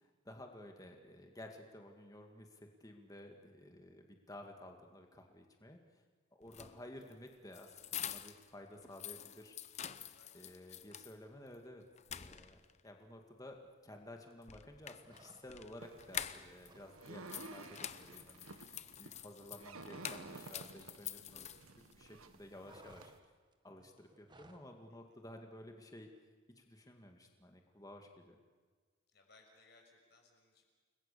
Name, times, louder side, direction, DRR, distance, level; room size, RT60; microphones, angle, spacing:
voice 1, 0.0-5.8 6.4-9.6 10.3-11.8 12.1-18.4 19.0-21.5 22.0-23.1 23.6-26.1 26.6-28.4, left 1 dB, 15° left, 3 dB, 2.1 m, -54 dB
sound 1, 6.4-8.5 8.8-11.2 11.5-11.6 12.0-12.8 14.4-16.7 17.0-21.9, left 9 dB, 30° left, 0.7 m, -47 dB
voice 2, 10.1-10.5 24.9-25.2 29.1-30.6, left 3 dB, 50° left, 2 dB, 6.2 m, -66 dB
sound 2, 15.0-15.8 16.1-17.0 17.3-17.5 17.8-20.5 20.8-21.9 22.1-24.7, right 2 dB, 20° right, 1.6 m, -63 dB
sound 3, 15.8-23.2, right 3 dB, 85° right, 1.6 m, -53 dB
29.5 x 21.5 x 6.9 m, 1.5 s
head